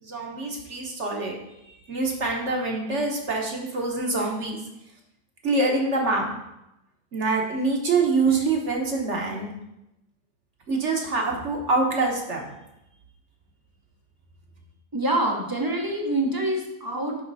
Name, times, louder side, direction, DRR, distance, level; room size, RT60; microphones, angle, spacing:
voice 1, 0.0-1.4 1.9-4.6 5.4-6.3 7.1-9.5 10.7-12.5, right 3 dB, 50° right, 0 dB, 1.2 m, -25 dB
voice 2, 14.9-17.2, right 1 dB, 20° right, 0 dB, 0.6 m, -26 dB
6.2 x 5.6 x 4.0 m, 0.88 s
omnidirectional pair, 1.9 m